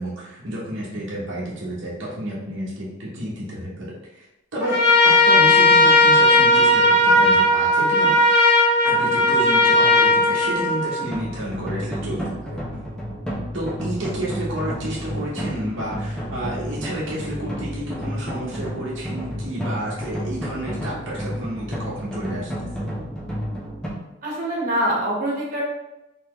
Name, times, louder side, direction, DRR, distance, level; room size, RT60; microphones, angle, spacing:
voice 1, 0.0-4.2 4.5-4.8 5.0-8.1 8.8-12.6 13.5-22.9, right 1 dB, 75° right, -6 dB, 1.1 m, -30 dB
Trumpet, 4.6-11.1, left 2 dB, 15° right, 1.4 m, -16 dB
sound 1, 11.1-23.9, equal, 5° left, 1.0 m, -31 dB
voice 2, 24.2-25.6, right 1 dB, 45° right, -4 dB, 1.4 m, -24 dB
4.2 x 3.4 x 3.1 m, 0.96 s
head